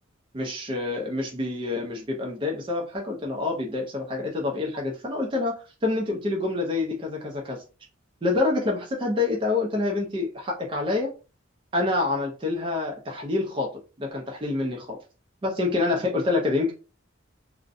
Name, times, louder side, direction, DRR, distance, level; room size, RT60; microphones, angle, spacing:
voice 1, 0.3-7.6 8.2-11.1 11.7-13.7 14.0-15.0 15.4-16.7, left 3 dB, 25° right, 0 dB, 0.4 m, -27 dB
2.5 x 2.1 x 2.5 m, 0.34 s
head